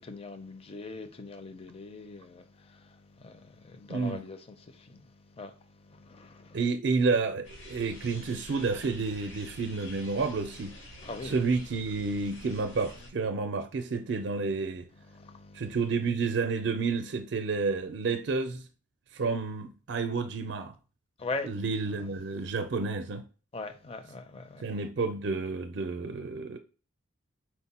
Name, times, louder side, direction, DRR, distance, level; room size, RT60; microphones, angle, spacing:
voice 1, 0.0-6.6 11.0-11.4 15.0-15.8 21.2-21.6 23.5-24.8, left 3 dB, 30° left, 0.5 m, -41 dB
voice 2, 3.9-4.2 6.5-10.7 11.2-14.9 15.5-18.7 19.1-20.7 21.4-23.2 24.6-26.6, right 4 dB, 65° right, 0.4 m, -30 dB
sound 1, 7.4-13.1, left 1 dB, 85° left, 1.2 m, -48 dB
4.5 x 2.1 x 4.1 m
head